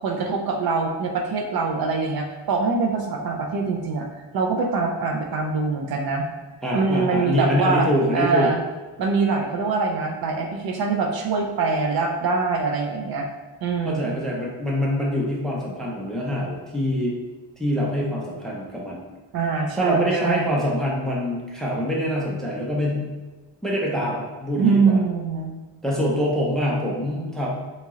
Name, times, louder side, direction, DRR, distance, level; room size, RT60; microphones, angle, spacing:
voice 1, 0.0-4.1 4.3-6.3 6.7-8.6 9.0-13.3 13.6-14.2 19.3-20.6 24.6-25.5, right 4 dB, 55° right, 2 dB, 0.5 m, -23 dB
voice 2, 6.6-8.5 13.8-17.2 17.6-19.0 19.7-23.1 23.6-25.0 25.8-27.5, equal, ahead, -3 dB, 0.4 m, -25 dB
2.9 x 2.8 x 3.6 m, 1.3 s
cardioid pair, 160°, 46 cm